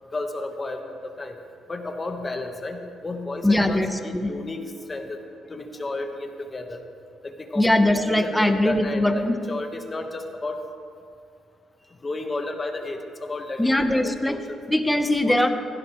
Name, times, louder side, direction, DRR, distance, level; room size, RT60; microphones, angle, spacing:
voice 1, 0.1-1.4 1.7-5.2 5.5-6.8 7.2-10.6 12.0-14.6 15.2-15.4, left 2 dB, 30° left, 5 dB, 1.2 m, -32 dB
voice 2, 3.4-4.3 7.5-9.4 13.6-14.4 14.7-15.5, left 1 dB, 5° left, 7 dB, 1.0 m, -21 dB
16.0 x 15.5 x 3.1 m, 2.3 s
cardioid pair, 90°, 0 cm